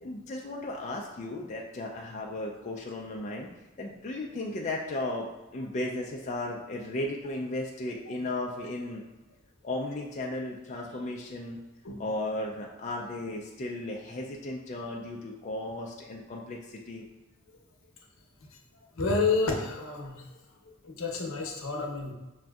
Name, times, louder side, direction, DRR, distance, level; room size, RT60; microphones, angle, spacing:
voice 1, 0.0-3.5 3.8-5.3 5.5-9.0 9.6-11.6 12.0-17.0, left 2 dB, 35° left, -1 dB, 0.3 m, -35 dB
voice 2, 19.0-20.2 20.8-22.1, left 4 dB, 80° left, 0 dB, 0.7 m, -29 dB
6.0 x 2.5 x 2.3 m, 1.1 s
head